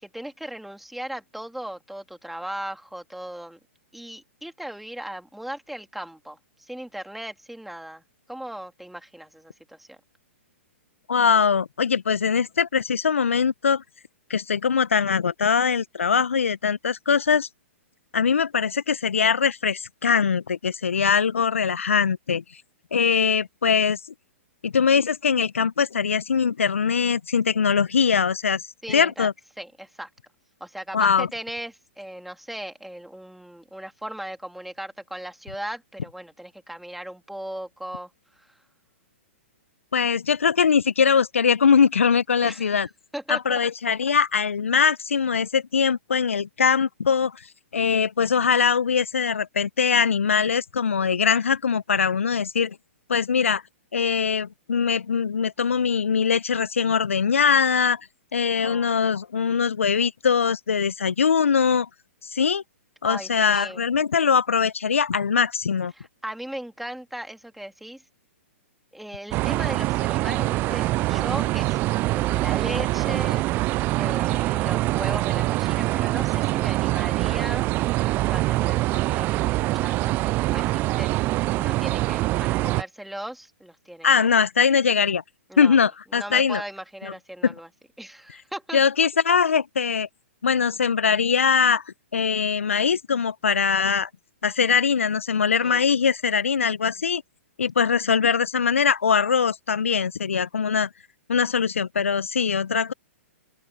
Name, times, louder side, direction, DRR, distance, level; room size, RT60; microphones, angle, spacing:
voice 1, 0.0-3.6 3.9-8.0 8.3-10.0 28.8-29.3 29.6-30.1 30.6-38.5 42.4-42.8 43.1-43.6 58.5-59.0 63.0-63.8 65.9-68.0 68.9-73.4 74.0-84.3 85.5-87.7 88.0-88.8 95.6-95.9, right 1 dB, ahead, 3.4 m, -37 dB
voice 2, 11.1-13.8 14.3-17.5 18.1-22.4 22.9-24.0 24.6-28.6 28.9-29.3 30.9-31.3 39.9-42.9 43.3-47.4 47.7-52.8 53.1-53.6 53.9-58.0 58.3-61.9 62.2-62.6 63.0-65.9 84.0-85.2 85.6-86.6 87.0-87.1 87.4-87.5 88.7-90.1 90.4-91.8 92.1-94.1 94.4-97.2 97.6-100.9 101.3-102.9, left 6 dB, 70° left, 0.9 m, -22 dB
sound 1, 69.3-82.8, right 19 dB, 25° right, 0.4 m, -24 dB
open air
figure-of-eight pair, 115°, 7 cm